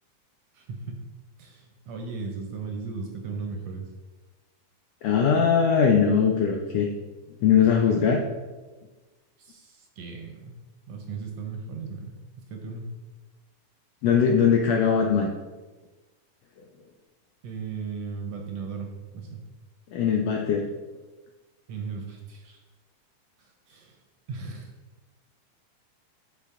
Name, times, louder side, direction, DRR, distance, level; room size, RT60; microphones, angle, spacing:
voice 1, 0.5-1.0 1.4-3.8 9.4-10.5 10.9-12.8 17.4-18.9 19.1-19.4 21.7-22.6 23.4-24.0 24.3-24.7, right 5 dB, 70° right, 2 dB, 1.7 m, -36 dB
voice 2, 5.0-6.9 7.4-8.2 14.0-15.3 19.9-20.6, left 7 dB, 80° left, 1 dB, 1.5 m, -21 dB
11.0 x 4.2 x 3.6 m, 1.2 s
omnidirectional pair, 3.6 m